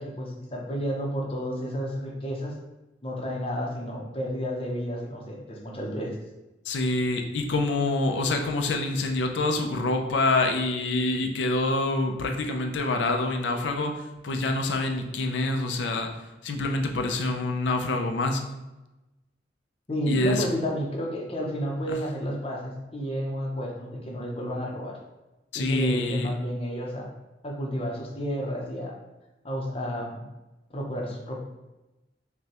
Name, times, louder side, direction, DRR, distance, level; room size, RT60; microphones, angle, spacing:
voice 1, 0.0-2.5 3.0-6.2 19.9-25.0 25.5-27.1 27.4-28.9 29.4-30.2 30.7-31.4, equal, 30° left, -1 dB, 0.6 m, -31 dB
voice 2, 6.7-13.9 14.2-16.1 16.4-18.4 20.1-20.4 21.9-22.0 25.5-26.3, left 2 dB, 85° left, 4 dB, 0.5 m, -26 dB
5.3 x 2.2 x 2.9 m, 1.0 s
head